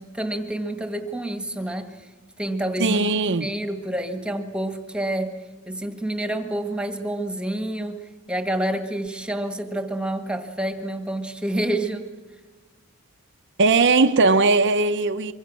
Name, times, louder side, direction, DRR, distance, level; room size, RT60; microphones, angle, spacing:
voice 1, 0.0-1.9 2.4-5.4 5.7-8.0 8.3-12.1, right 1 dB, 5° right, 1.6 m, -28 dB
voice 2, 2.8-3.5 13.6-15.3, right 3 dB, 55° right, 0.8 m, -19 dB
25.5 x 24.0 x 6.2 m
head